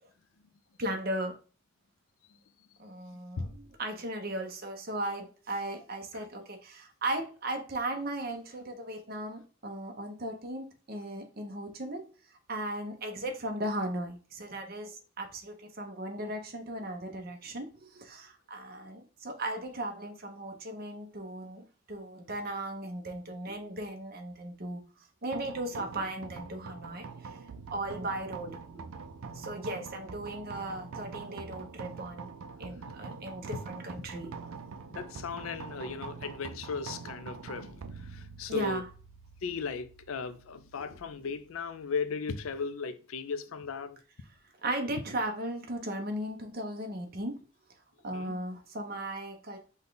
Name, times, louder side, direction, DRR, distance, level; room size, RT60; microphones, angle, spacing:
voice 1, 0.8-1.3 2.8-12.0 12.5-21.6 21.9-27.4 27.7-28.6 29.3-32.3 32.6-34.3 38.5-38.8 44.6-47.3 48.0-49.6, right 1 dB, 45° right, 0.8 m, -37 dB
sound 1, 25.3-42.5, right 5 dB, 80° right, 0.5 m, -45 dB
voice 2, 34.9-37.8 38.1-38.8 39.4-44.0 48.1-48.4, left 5 dB, 85° left, 0.5 m, -36 dB
5.2 x 2.3 x 3.9 m
head